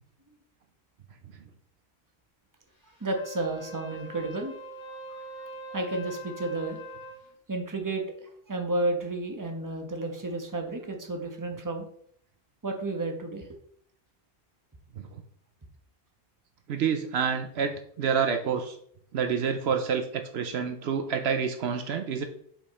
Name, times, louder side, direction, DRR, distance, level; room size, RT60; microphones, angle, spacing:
Wind instrument woodwind instrument, 3.0-7.3, right 1 dB, 45° left, 2.0 m, -43 dB
voice 1, 3.0-4.5 5.7-6.8 7.5-8.0 8.5-11.9 12.6-13.5, right 2 dB, 20° right, 3 dB, 1.1 m, -31 dB
voice 2, 16.7-18.8 19.1-22.2, right 6 dB, 70° right, 7 dB, 0.9 m, -28 dB
5.8 x 5.2 x 4.2 m, 0.65 s
omnidirectional pair, 1.1 m